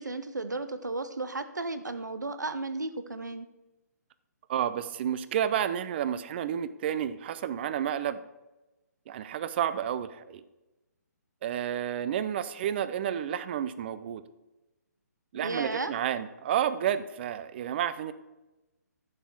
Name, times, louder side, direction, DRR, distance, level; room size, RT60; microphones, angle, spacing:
voice 1, 0.0-3.5 15.3-15.9, right 3 dB, 90° right, 11 dB, 0.8 m, -34 dB
voice 2, 4.5-8.2 9.1-10.4 11.4-14.2 15.3-18.1, right 9 dB, 35° right, 14 dB, 0.6 m, -30 dB
11.0 x 7.3 x 4.6 m, 1.0 s
figure-of-eight pair, 140°, 9 cm